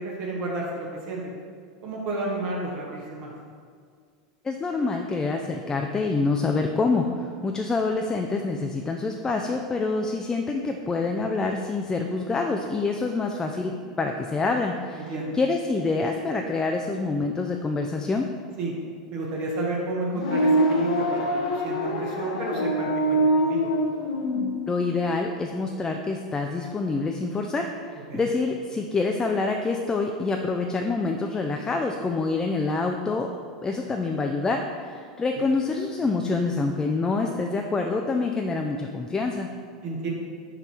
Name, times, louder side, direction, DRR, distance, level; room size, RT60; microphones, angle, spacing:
voice 1, 0.0-1.3 1.8-3.3 14.9-15.4 18.6-18.7 19.1-23.7 28.1-28.3 35.4-35.5 39.8-40.1, right 2 dB, 50° right, -2 dB, 1.1 m, -31 dB
voice 2, 4.4-18.3 24.7-33.3 33.6-39.5, left 3 dB, 20° left, 3 dB, 0.4 m, -26 dB
sound 1, 20.1-24.5, right 1 dB, 75° left, 0.8 m, -24 dB
5.3 x 4.6 x 4.4 m, 2.1 s
hypercardioid pair, 85°, 3 cm